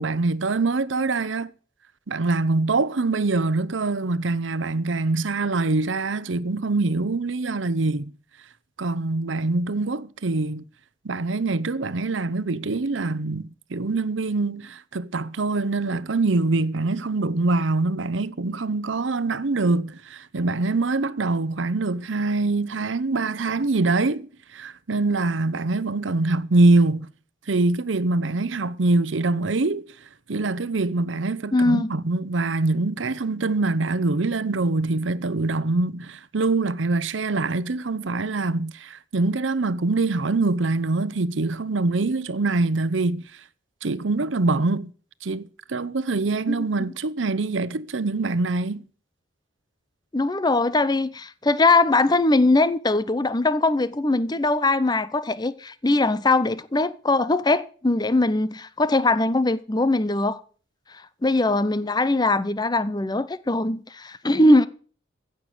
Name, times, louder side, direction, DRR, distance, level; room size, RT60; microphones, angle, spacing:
voice 1, 0.0-1.5 2.1-8.1 8.8-10.6 11.0-27.1 27.5-29.8 30.3-43.2 43.8-44.9 45.2-48.8, right 3 dB, 85° right, 0.8 m, -24 dB
voice 2, 31.5-31.9 46.5-46.7 50.1-60.4 60.9-64.7, left 2 dB, 20° left, 0.7 m, -21 dB
15.5 x 6.7 x 7.6 m
head